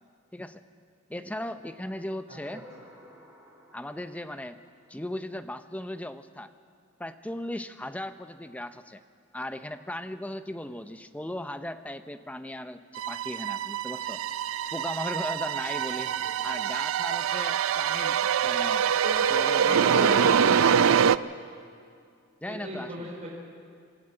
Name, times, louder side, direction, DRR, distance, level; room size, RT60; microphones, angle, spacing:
voice 1, 1.1-2.6 3.7-4.6 4.9-6.5 7.0-9.0 9.3-14.2 14.7-16.1 16.4-18.9 19.3-20.4 22.4-23.1, left 1 dB, 5° left, 10 dB, 0.6 m, -37 dB
voice 2, 2.3-2.6 16.0-16.2 19.0-19.2 19.5-21.0 22.5-23.3, equal, 35° right, -4 dB, 4.9 m, -36 dB
sound 1, 2.4-5.8, equal, 15° right, 5.0 m, -57 dB
sound 2, 12.9-21.2, right 8 dB, 70° right, 0.4 m, -25 dB
26.5 x 11.5 x 8.8 m, 2.3 s
head